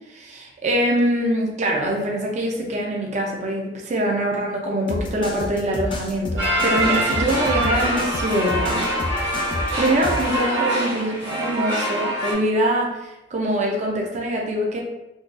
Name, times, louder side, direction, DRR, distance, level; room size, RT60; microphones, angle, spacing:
voice 1, 0.1-8.9 9.8-14.8, right 1 dB, 40° right, 0 dB, 0.5 m, -24 dB
sound 1, 4.9-10.3, left 1 dB, 25° left, 0.4 m, -29 dB
sound 2, 6.4-12.3, right 1 dB, 70° right, 1.3 m, -24 dB
3.8 x 2.3 x 2.4 m, 1.0 s
head